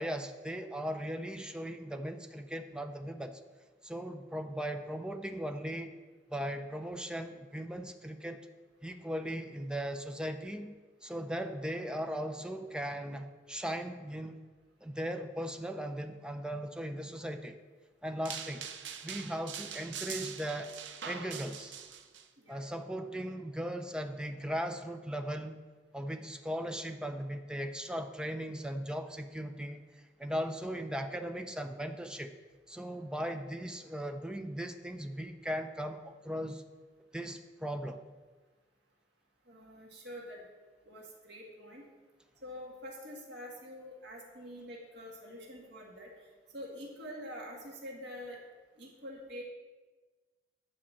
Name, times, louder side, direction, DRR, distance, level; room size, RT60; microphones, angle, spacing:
voice 1, 0.0-3.4 3.8-5.9 6.3-8.4 8.8-10.7 11.0-14.4 14.8-17.6 18.0-18.7 19.0-20.7 21.0-21.7 22.5-25.6 25.9-29.9 30.2-32.3 32.7-36.6 37.1-38.0, equal, 5° right, 6 dB, 0.6 m, -38 dB
sound 1, 18.3-22.2, right 8 dB, 80° right, 0.7 m, -43 dB
voice 2, 39.5-40.5 40.9-41.8 42.4-46.1 46.5-48.4 48.8-49.4, equal, 65° right, -2 dB, 1.8 m, -46 dB
10.0 x 5.0 x 7.3 m, 1.3 s
head